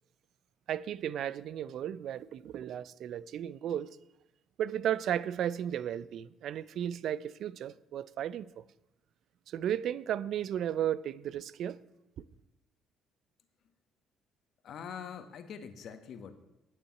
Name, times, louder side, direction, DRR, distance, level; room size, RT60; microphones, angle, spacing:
voice 1, 0.7-4.0 4.6-8.6 9.5-11.8, right 10 dB, 65° right, 0.5 m, -34 dB
voice 2, 14.6-16.3, left 7 dB, 65° left, 1.5 m, -44 dB
10.0 x 8.3 x 9.2 m
supercardioid pair, 75°, 0 cm